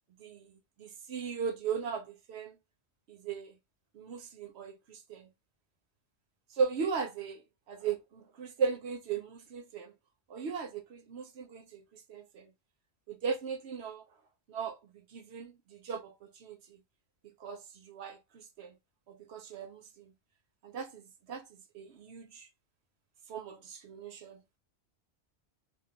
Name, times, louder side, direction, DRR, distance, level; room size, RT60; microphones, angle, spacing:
voice 1, 0.2-2.6 3.1-3.6 3.9-5.3 6.5-9.9 10.3-12.5 13.1-14.0 14.5-16.8 17.4-18.8 19.1-20.1 20.6-22.5 23.3-24.4, right 6 dB, 85° right, 1.0 m, -38 dB
2.3 x 2.3 x 3.8 m
omnidirectional pair, 1.1 m